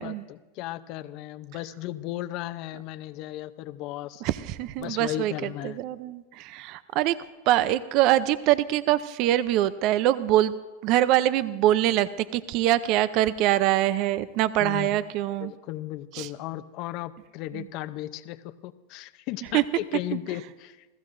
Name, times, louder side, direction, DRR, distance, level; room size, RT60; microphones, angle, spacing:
voice 1, 0.0-4.2 4.8-5.8 14.6-15.0 15.4-20.9, left 15 dB, 55° left, 11 dB, 0.6 m, -36 dB
voice 2, 4.2-7.2 7.5-10.6 10.8-15.5 16.1-16.3 17.5-17.7 19.5-19.6, right 13 dB, 50° right, 16 dB, 0.5 m, -24 dB
28.5 x 15.5 x 2.6 m, 1.2 s
hypercardioid pair, 110°, 0 cm